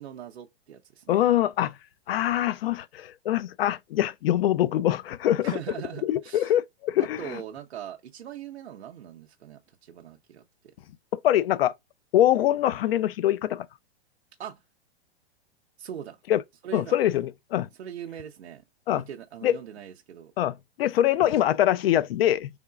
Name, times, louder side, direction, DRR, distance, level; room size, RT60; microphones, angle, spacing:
voice 1, 0.0-1.2 5.4-6.5 7.0-10.4 14.4-14.6 15.8-16.2 16.6-17.0 17.8-18.6 18.9-20.3, right 9 dB, 80° right, 0.7 m, -40 dB
voice 2, 1.1-1.7 2.1-5.5 6.0-7.4 11.1-11.7 12.1-13.7 16.3-16.4 16.7-17.7 18.9-19.0 19.4-19.6 20.4-22.5, left 12 dB, 65° left, 0.5 m, -24 dB
3.6 x 3.5 x 2.3 m
hypercardioid pair, 120°, 32 cm